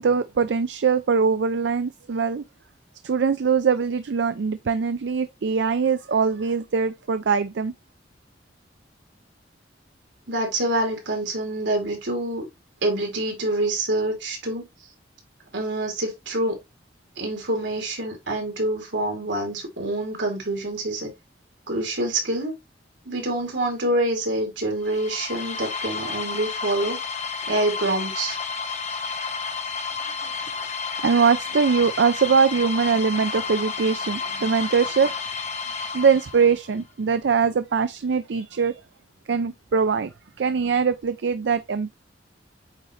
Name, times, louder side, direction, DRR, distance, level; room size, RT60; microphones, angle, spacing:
voice 1, 0.0-2.4 3.0-7.7 30.0-30.1 31.0-35.2 35.9-38.7 39.3-40.1 40.4-41.9, right 5 dB, 70° right, 0.4 m, -22 dB
voice 2, 10.3-12.5 12.8-14.7 15.5-16.6 17.2-21.1 21.7-22.5 23.0-27.0 27.5-28.4, right 1 dB, 85° right, 2.9 m, -26 dB
sound 1, 24.8-36.7, left 5 dB, 40° left, 1.1 m, -31 dB
8.2 x 3.8 x 3.1 m
head